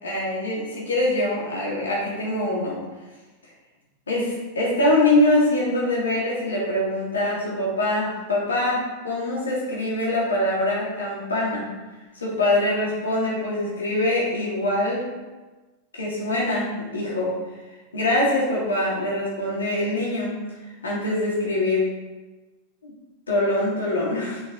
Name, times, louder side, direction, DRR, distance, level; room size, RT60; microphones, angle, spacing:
voice 1, 0.0-2.8 4.1-4.3 4.6-11.7 12.1-15.1 15.9-17.3 17.9-20.4 20.8-21.9 22.8-22.9 23.3-24.4, left 1 dB, 70° left, -5 dB, 2.8 m, -23 dB
7.9 x 6.0 x 3.9 m, 1.2 s
figure-of-eight pair, 90°, 0 cm